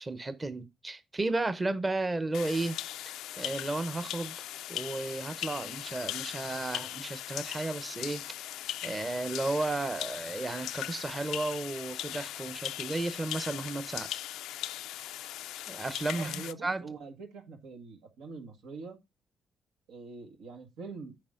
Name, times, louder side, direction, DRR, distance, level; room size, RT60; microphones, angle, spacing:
voice 1, 0.0-2.8 3.4-14.1 15.7-16.8, right 2 dB, 25° right, 0.8 m, -34 dB
sound 1, 2.3-16.5, left 13 dB, 90° left, 0.4 m, -39 dB
voice 2, 16.1-19.0 19.9-21.2, right 4 dB, 85° right, 1.8 m, -44 dB
8.6 x 5.1 x 3.7 m
cardioid pair, 90°, 0 cm